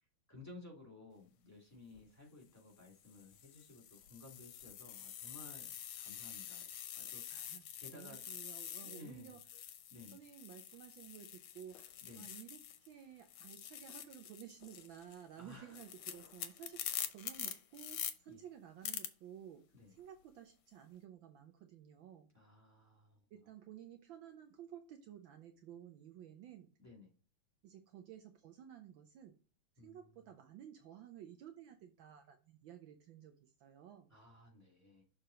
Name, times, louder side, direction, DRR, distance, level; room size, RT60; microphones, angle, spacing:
voice 1, 0.3-6.7 6.9-8.2 8.8-9.4 9.9-10.2 12.0-12.3 15.4-15.8 18.3-18.4 19.7-19.9 22.3-23.2 26.8-27.1 29.8-30.1 34.1-35.0, left 2 dB, 5° left, -2 dB, 2.1 m, -56 dB
sound 1, 1.8-2.0 2.8-12.9 13.2-18.1 18.8-19.1, left 10 dB, 75° left, 1.6 m, -46 dB
voice 2, 7.3-9.6 10.1-12.6 12.9-22.3 23.3-26.7 27.6-29.4 29.8-34.1, right 10 dB, 70° right, 6 dB, 1.4 m, -54 dB
6.6 x 4.4 x 3.9 m, 0.37 s
omnidirectional pair, 2.4 m